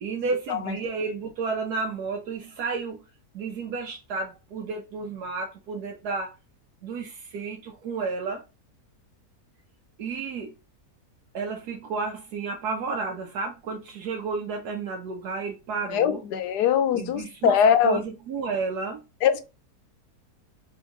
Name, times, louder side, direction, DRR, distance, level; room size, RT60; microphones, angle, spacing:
voice 1, 0.0-3.1 3.3-6.3 6.8-8.4 10.0-10.6 11.3-16.2 16.9-19.0, right 4 dB, 75° right, 1.3 m, -31 dB
voice 2, 15.9-18.0 19.2-19.4, left 8 dB, 85° left, 1.3 m, -22 dB
4.3 x 3.3 x 3.7 m
omnidirectional pair, 1.7 m